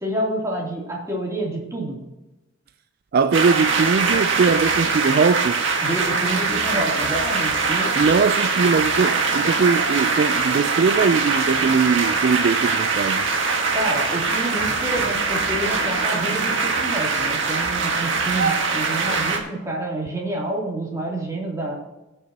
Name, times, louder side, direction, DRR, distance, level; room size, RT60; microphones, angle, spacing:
voice 1, 0.0-2.0 5.8-7.9 13.7-21.7, right 1 dB, 15° right, 2.9 m, -28 dB
voice 2, 3.1-5.6 8.0-13.2, right 5 dB, 50° right, 0.3 m, -20 dB
sound 1, 3.3-19.4, right 4 dB, 75° right, 1.6 m, -22 dB
17.5 x 6.7 x 2.9 m
head